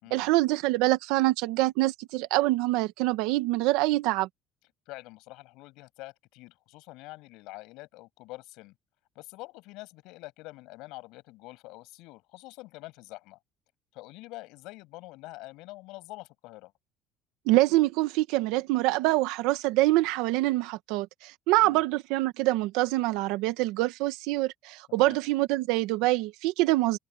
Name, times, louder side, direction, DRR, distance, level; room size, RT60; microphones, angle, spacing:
voice 1, 0.1-4.3 17.5-27.0, right 18 dB, 80° right, 1.4 m, -25 dB
voice 2, 4.9-8.7 9.2-13.4 13.9-16.7 21.6-21.8 24.9-25.2, left 21 dB, 70° left, 7.5 m, -46 dB
cardioid pair, 170°, 0 cm